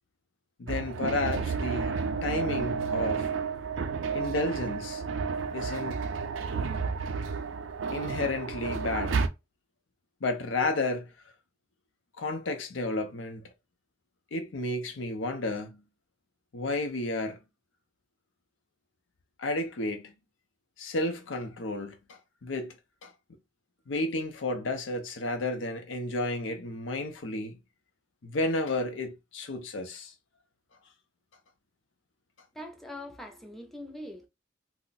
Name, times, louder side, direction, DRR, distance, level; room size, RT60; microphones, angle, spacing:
voice 1, 0.6-3.3 4.1-5.0 5.5-6.1 7.9-9.2 10.2-11.1 12.2-13.5 14.3-15.8 16.5-17.4 19.4-20.1 20.8-22.8 23.0-23.1 23.9-27.6 28.2-30.1, left 2 dB, 80° left, 0.6 m, -32 dB
sound 1, 0.7-9.3, right 5 dB, 85° right, 0.4 m, -31 dB
voice 2, 32.5-34.3, left 1 dB, ahead, 0.5 m, -42 dB
2.4 x 2.1 x 3.9 m
head